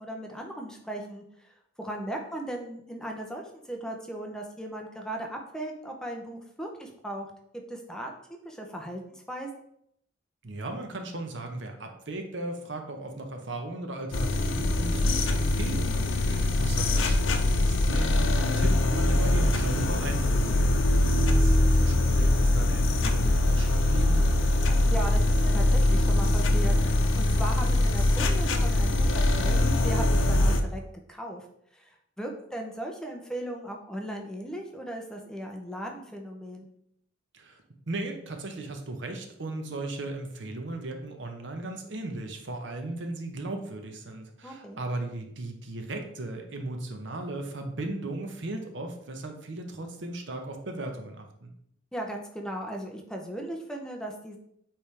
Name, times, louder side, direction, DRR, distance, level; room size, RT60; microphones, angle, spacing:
voice 1, 0.0-7.3 7.7-8.1 8.4-9.5 24.7-30.8 31.1-31.4 31.7-31.9 32.2-36.7 44.4-44.8 51.9-54.4, right 1 dB, 5° left, 1 dB, 0.7 m, -37 dB
voice 2, 10.4-20.5 20.9-24.3 37.3-51.5, right 2 dB, 65° right, 4 dB, 0.9 m, -37 dB
sound 1, 14.1-30.6, left 1 dB, 85° left, 0.7 m, -23 dB
8.4 x 3.4 x 3.3 m, 0.72 s
head